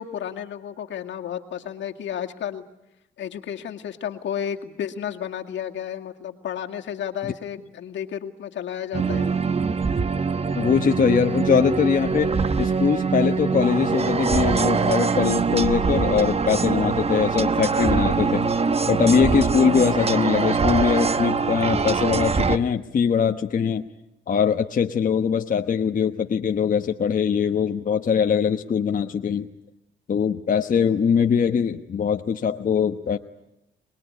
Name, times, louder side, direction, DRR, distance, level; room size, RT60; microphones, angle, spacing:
voice 1, 0.0-2.7 3.2-9.3, left 9 dB, 70° left, 4 dB, 2.1 m, -32 dB
sound 1, 8.9-22.6, right 5 dB, 30° right, 1.0 m, -23 dB
voice 2, 10.6-12.3 12.6-18.5 18.9-23.8 24.3-29.5 30.1-33.2, left 7 dB, 45° left, 5 dB, 1.1 m, -22 dB
26.0 x 21.0 x 9.7 m, 0.86 s
cardioid pair, 90°, 20 cm